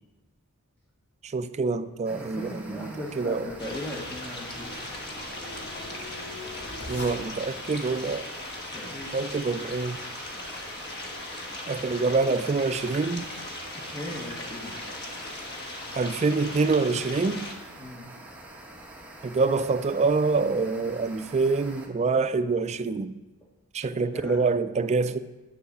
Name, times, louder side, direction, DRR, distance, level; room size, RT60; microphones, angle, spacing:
voice 1, 1.2-3.5 6.9-8.3 9.1-10.0 11.7-13.3 16.0-17.5 19.2-23.2 23.7-25.2, right 4 dB, 30° right, 0.3 m, -26 dB
sound 1, 2.0-21.9, right 1 dB, 5° right, 1.0 m, -46 dB
voice 2, 2.1-4.8 7.1-7.2 8.7-9.2 13.9-14.8 17.8-18.0 24.1-24.6, left 1 dB, 10° left, 1.1 m, -38 dB
sound 2, 3.3-7.7, left 1 dB, 90° left, 2.5 m, -44 dB
sound 3, 3.6-17.5, left 2 dB, 50° left, 1.3 m, -38 dB
9.6 x 4.7 x 7.2 m
head